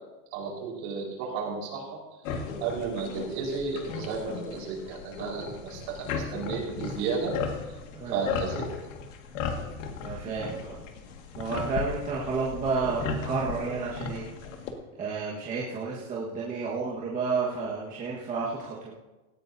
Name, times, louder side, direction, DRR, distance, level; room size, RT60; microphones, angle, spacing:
voice 1, 0.3-2.0 2.3-7.4 8.1-8.7, right 5 dB, 45° right, -2 dB, 4.6 m, -33 dB
sound 1, 2.2-14.7, left 5 dB, 60° left, 1.9 m, -36 dB
voice 2, 10.0-10.8 11.3-14.3 15.0-18.9, right 4 dB, 20° right, -5 dB, 1.5 m, -31 dB
18.0 x 14.0 x 2.7 m, 1.1 s
supercardioid pair, 165°, 44 cm